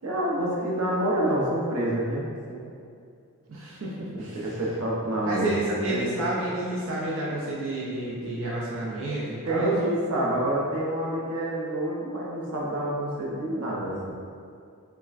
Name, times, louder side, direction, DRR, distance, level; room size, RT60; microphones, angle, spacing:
voice 1, 0.0-2.7 4.1-6.2 9.4-14.1, right 1 dB, 85° right, -4 dB, 0.8 m, -28 dB
voice 2, 3.5-4.5 5.2-9.9, right 1 dB, 60° right, -7 dB, 0.5 m, -30 dB
5.5 x 2.2 x 2.4 m, 2.3 s
head